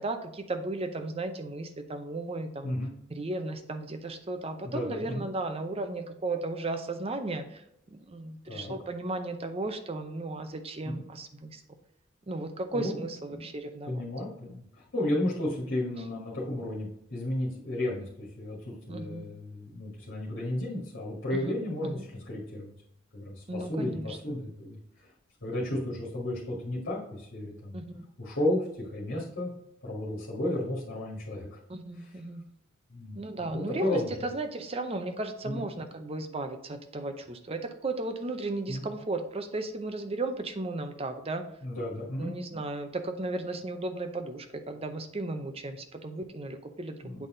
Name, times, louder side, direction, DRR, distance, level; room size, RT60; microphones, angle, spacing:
voice 1, 0.0-2.7 3.1-7.6 7.9-11.6 12.3-14.0 18.9-19.3 21.4-21.5 21.8-22.0 23.5-24.4 27.7-28.1 31.7-32.5 33.2-41.4 42.2-47.3, right 2 dB, 30° right, 7 dB, 0.6 m, -35 dB
voice 2, 2.6-2.9 4.6-5.2 8.5-8.7 10.8-11.0 12.7-12.9 13.3-13.5 13.8-22.7 23.1-25.1 25.4-27.8 28.2-29.5 29.8-31.6 31.9-32.2 32.9-33.2 33.5-34.1 35.4-35.7 38.7-38.9 41.6-42.3 47.0-47.3, left 1 dB, 65° left, -6 dB, 1.9 m, -33 dB
8.3 x 4.1 x 3.8 m, 0.79 s
head